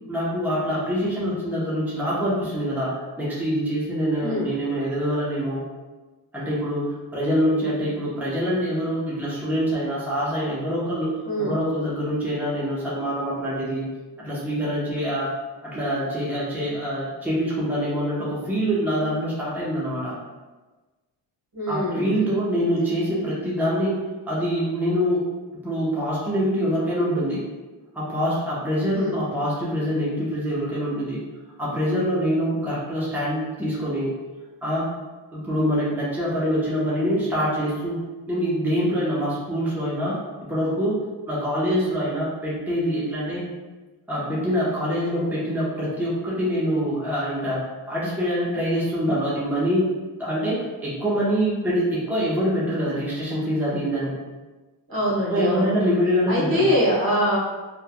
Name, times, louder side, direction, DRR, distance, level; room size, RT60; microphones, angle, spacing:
voice 1, 0.1-5.6 6.3-11.1 11.4-13.8 14.2-15.3 15.6-20.1 21.7-25.2 25.6-27.4 27.9-31.2 31.6-34.1 34.6-34.9 35.3-38.0 38.3-40.2 40.5-43.4 44.1-47.6 47.9-49.9 50.2-54.2 55.3-56.7, equal, 5° right, -8 dB, 0.9 m, -25 dB
voice 2, 4.2-4.5 11.2-11.6 21.5-22.2 28.9-29.2 54.9-55.8 56.3-57.4, equal, 45° right, -6 dB, 1.2 m, -23 dB
3.2 x 2.2 x 2.2 m, 1.2 s
cardioid pair, 55°, 47 cm